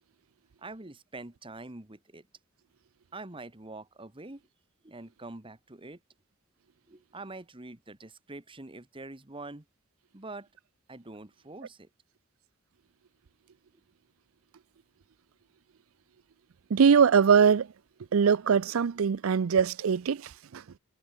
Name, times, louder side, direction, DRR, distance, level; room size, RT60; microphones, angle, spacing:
voice 1, 0.6-2.3 3.1-4.4 4.8-6.0 6.9-9.6 10.1-10.5 10.9-11.9, right 2 dB, 25° right, 1.6 m, -44 dB
voice 2, 16.7-17.7 18.1-20.6, right 6 dB, 85° right, 0.5 m, -22 dB
head